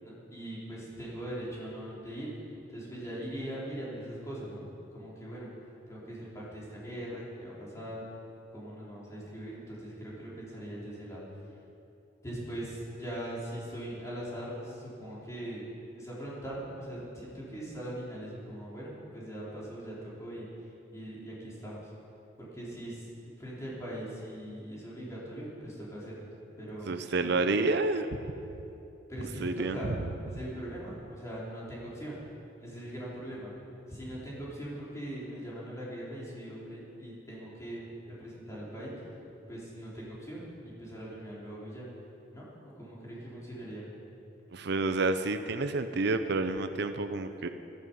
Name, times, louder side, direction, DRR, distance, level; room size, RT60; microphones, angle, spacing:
voice 1, 0.0-2.3 2.7-5.5 5.9-8.0 8.5-11.2 12.2-15.6 16.0-20.5 20.9-21.9 22.4-26.3 26.6-27.5 29.1-30.0 30.2-32.2 32.6-33.5 33.9-38.9 39.5-41.8 42.3-43.9, right 1 dB, 15° left, -7 dB, 3.9 m, -41 dB
voice 2, 26.9-28.2 29.4-30.0 44.5-47.5, right 3 dB, 60° right, 9 dB, 0.6 m, -29 dB
15.5 x 14.0 x 5.5 m, 2.8 s
head